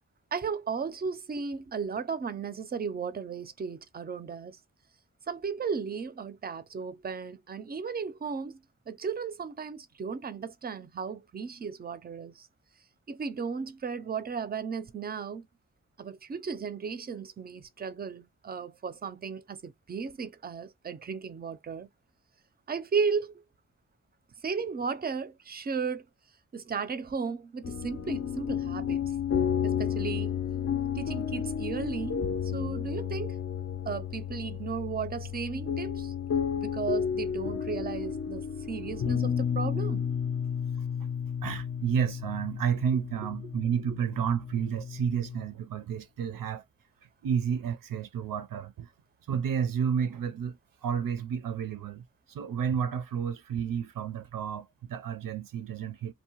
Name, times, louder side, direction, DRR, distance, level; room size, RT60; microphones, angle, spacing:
voice 1, 0.3-4.6 5.3-8.6 8.9-12.5 13.1-15.5 16.0-21.9 22.7-23.3 24.4-26.0 26.5-29.1 29.6-30.4 31.0-33.4 33.8-36.1 36.6-40.1, right 5 dB, 30° right, 0.4 m, -35 dB
sound 1, 27.6-45.5, left 7 dB, 50° left, 0.4 m, -32 dB
voice 2, 41.4-46.6 47.2-48.9 49.3-50.6 50.8-56.1, right 7 dB, 85° right, 0.5 m, -31 dB
2.7 x 2.1 x 2.8 m
wide cardioid pair, 85°, 33 cm